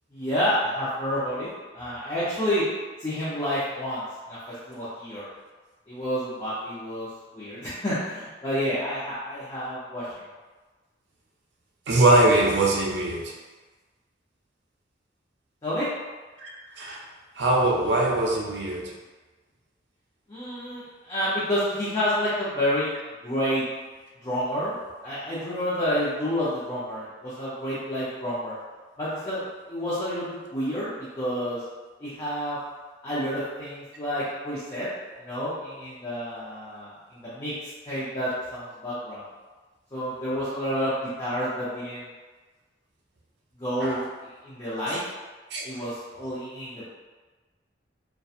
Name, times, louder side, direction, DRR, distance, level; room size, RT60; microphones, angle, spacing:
voice 1, 0.1-1.5 1.7-2.6 3.0-5.3 5.9-7.1 7.3-10.0 15.6-15.9 20.3-22.9 23.2-23.6 24.2-24.7 25.0-28.5 29.0-29.4 29.7-31.6 32.0-32.6 33.0-34.9 35.2-37.5 37.9-39.3 39.9-42.1 43.6-45.0 45.6-46.8, equal, 25° left, -12 dB, 0.6 m, -29 dB
voice 2, 11.9-13.3 16.4-16.5 16.8-17.0 17.4-18.9 43.8-44.0 45.5-45.6, right 2 dB, 65° right, -1 dB, 0.5 m, -22 dB
2.7 x 2.2 x 2.4 m, 1.3 s
head